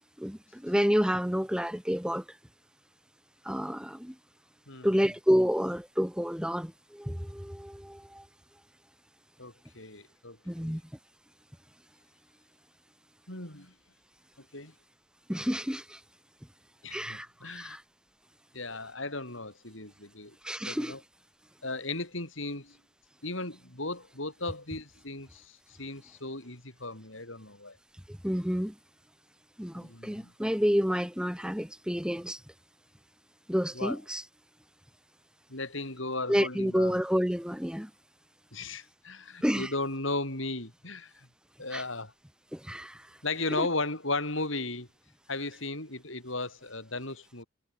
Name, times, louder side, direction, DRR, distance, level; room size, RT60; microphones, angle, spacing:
voice 1, 0.2-2.2 3.5-4.1 4.8-8.3 10.5-10.8 15.3-16.0 16.9-17.8 20.4-21.0 28.1-28.7 29.6-32.4 33.5-34.2 36.3-37.9 39.4-39.7 41.7-41.8 42.5-43.0 43.5-43.7, equal, 5° right, 3.7 m, -29 dB
voice 2, 9.4-10.8 13.3-13.7 14.5-14.7 16.8-17.8 18.5-20.4 20.6-21.0 21.6-22.8 23.2-27.8 29.7-30.3 33.7-34.0 35.5-37.0 38.5-41.3 41.6-42.1 43.2-44.9 45.3-47.5, left 2 dB, 65° left, 7.7 m, -36 dB
head